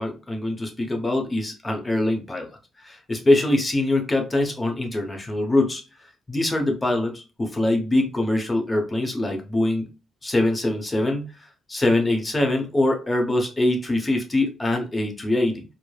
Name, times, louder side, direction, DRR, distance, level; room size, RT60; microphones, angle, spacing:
voice 1, 0.0-2.5 2.8-5.8 6.3-9.9 10.2-15.6, left 1 dB, 20° left, 3 dB, 0.7 m, -23 dB
3.1 x 2.0 x 2.2 m, 0.32 s
cardioid pair, 90°, 0 cm